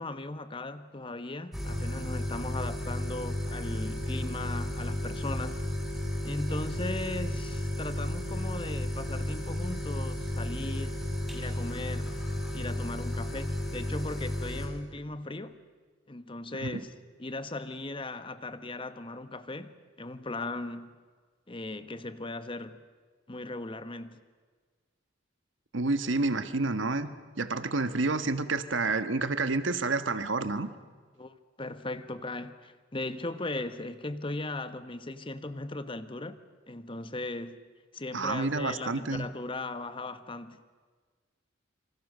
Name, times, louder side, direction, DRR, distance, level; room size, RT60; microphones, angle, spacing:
voice 1, 0.0-5.6 6.2-11.0 11.3-12.1 12.5-15.6 16.1-16.9 17.2-20.9 21.5-22.8 23.3-24.2 31.2-36.4 36.7-37.6 37.9-40.6, left 2 dB, 25° left, 1.2 m, -38 dB
sound 1, 1.5-14.7, equal, ahead, 5.9 m, -33 dB
voice 2, 25.7-27.1 27.4-30.7 38.1-39.3, right 3 dB, 80° right, 1.4 m, -29 dB
27.5 x 25.5 x 6.7 m
head